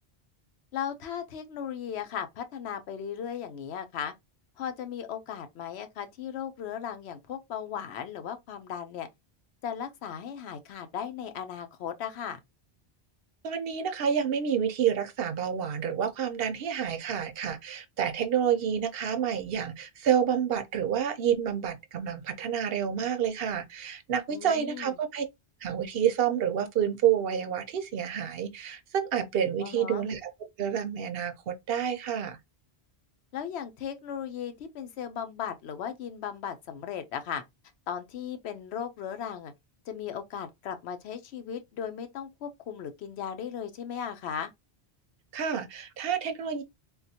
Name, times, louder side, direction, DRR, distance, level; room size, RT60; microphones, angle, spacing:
voice 1, 0.7-4.1 4.6-9.1 9.6-12.4 24.3-24.9 29.6-30.1 33.3-37.4 37.9-39.5 39.9-44.5, left 8 dB, 85° left, 0.9 m, -36 dB
voice 2, 13.4-25.3 25.6-30.3 30.6-32.4 45.3-46.6, right 8 dB, 70° right, 0.8 m, -29 dB
3.6 x 2.4 x 2.7 m
omnidirectional pair, 1.1 m